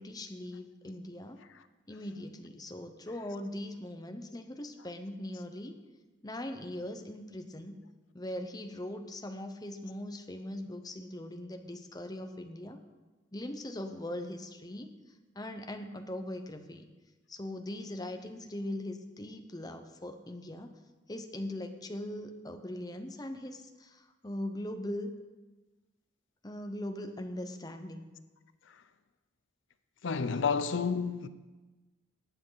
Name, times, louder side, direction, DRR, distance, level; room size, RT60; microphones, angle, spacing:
voice 1, 0.0-1.4 1.9-5.8 6.2-7.8 8.1-12.8 13.3-14.9 15.3-16.9 17.3-20.7 21.1-25.1 26.4-28.1, left 1 dB, 20° left, 0.8 m, -40 dB
voice 2, 30.0-31.3, left 5 dB, 80° left, 0.6 m, -30 dB
19.0 x 8.6 x 4.0 m
head